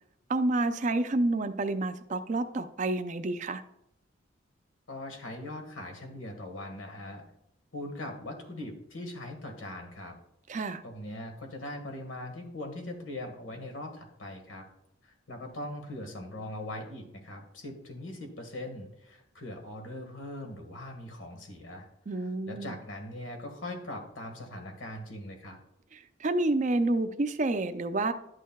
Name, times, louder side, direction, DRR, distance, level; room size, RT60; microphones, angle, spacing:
voice 1, 0.3-3.6 10.5-10.8 22.1-22.8 25.9-28.1, right 2 dB, 40° right, 9 dB, 0.5 m, -29 dB
voice 2, 4.9-7.2 7.7-10.2 10.8-14.7 15.0-21.9 22.2-25.6, left 1 dB, 85° left, 4 dB, 1.6 m, -41 dB
11.0 x 6.5 x 2.3 m, 0.78 s
head